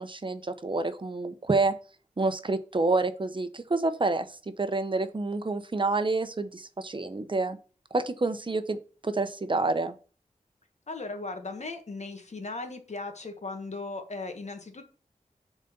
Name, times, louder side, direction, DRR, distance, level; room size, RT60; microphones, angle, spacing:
voice 1, 0.0-1.7 2.2-4.3 4.6-7.6 7.9-8.8 9.0-9.9, right 3 dB, 40° right, 10 dB, 0.8 m, -28 dB
voice 2, 10.9-14.8, left 3 dB, 60° left, 6 dB, 1.6 m, -37 dB
7.4 x 4.1 x 6.7 m, 0.37 s
wide cardioid pair, 85°, 13 cm